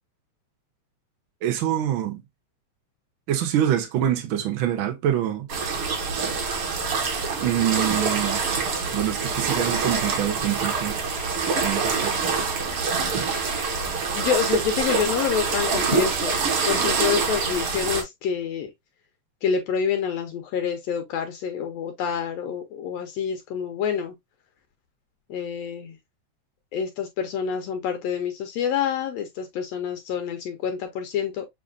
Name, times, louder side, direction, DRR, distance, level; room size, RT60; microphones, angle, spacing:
voice 1, 1.4-2.2 3.3-5.5 7.4-8.4 8.9-11.0 11.6-12.4, right 11 dB, 85° right, 1.1 m, -25 dB
sound 1, 5.5-18.0, right 5 dB, 55° right, 1.8 m, -25 dB
voice 2, 14.1-16.4 16.7-18.7 19.4-24.1 25.3-26.0 26.7-31.5, left 7 dB, 75° left, 1.6 m, -27 dB
7.3 x 2.5 x 2.4 m
omnidirectional pair, 3.4 m